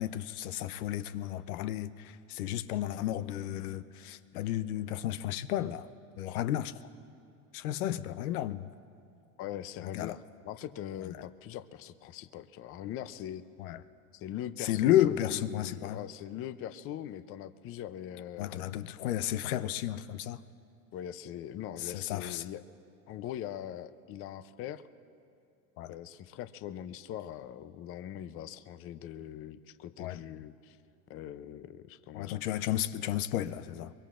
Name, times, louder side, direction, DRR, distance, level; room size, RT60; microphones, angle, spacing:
voice 1, 0.0-5.9 6.2-6.7 7.5-8.7 9.8-10.1 13.6-13.8 14.6-16.0 18.4-20.4 21.8-22.4 25.8-25.9 30.0-30.2 32.1-33.9, left 12 dB, 80° left, 12 dB, 0.7 m, -32 dB
voice 2, 9.4-13.4 14.1-18.5 20.9-22.6 23.1-24.8 25.9-30.8 31.1-32.4, left 11 dB, 30° left, 13 dB, 0.5 m, -42 dB
23.5 x 23.0 x 2.5 m, 2.5 s
supercardioid pair, 115°, 43 cm